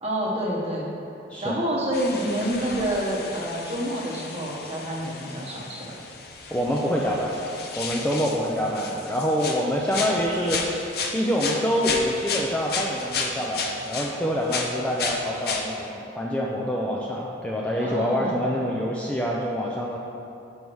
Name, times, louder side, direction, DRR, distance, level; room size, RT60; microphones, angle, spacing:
voice 1, 0.0-0.9 1.4-6.0 17.8-18.5, equal, 35° right, -4 dB, 1.1 m, -28 dB
sound 1, 1.9-14.1 14.5-15.7, left 4 dB, 55° left, 0.6 m, -33 dB
voice 2, 6.5-7.3 7.8-10.8 11.1-20.0, equal, 5° left, -3 dB, 0.4 m, -26 dB
5.5 x 4.7 x 6.2 m, 2.7 s
head